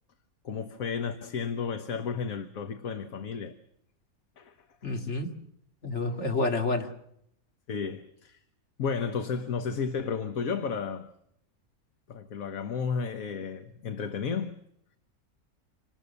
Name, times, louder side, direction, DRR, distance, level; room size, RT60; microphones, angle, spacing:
voice 1, 0.4-3.6 4.4-4.5 7.7-8.4 8.8-11.1 12.1-14.5, left 6 dB, 65° left, 1.5 m, -32 dB
voice 2, 4.8-5.3 5.8-6.9, left 3 dB, 50° left, 2.6 m, -29 dB
27.0 x 19.5 x 6.9 m
omnidirectional pair, 1.6 m